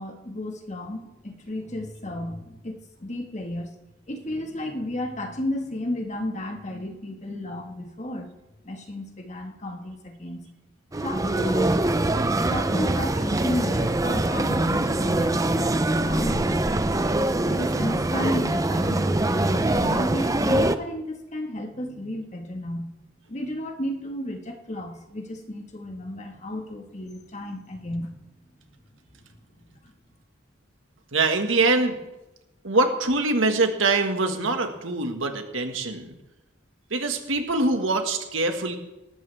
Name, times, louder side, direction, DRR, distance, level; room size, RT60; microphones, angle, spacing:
voice 1, 0.0-3.7 4.1-8.3 8.6-10.5 11.0-11.8 12.5-16.9 17.4-22.9 23.3-28.2 29.8-30.0, left 1 dB, 35° left, 3 dB, 1.7 m, -33 dB
sound 1, 10.9-20.8, right 1 dB, 15° right, 0.5 m, -23 dB
voice 2, 31.1-32.0 32.6-36.2 36.9-38.8, right 3 dB, 80° right, 5 dB, 1.8 m, -24 dB
19.0 x 13.5 x 3.5 m, 0.99 s
head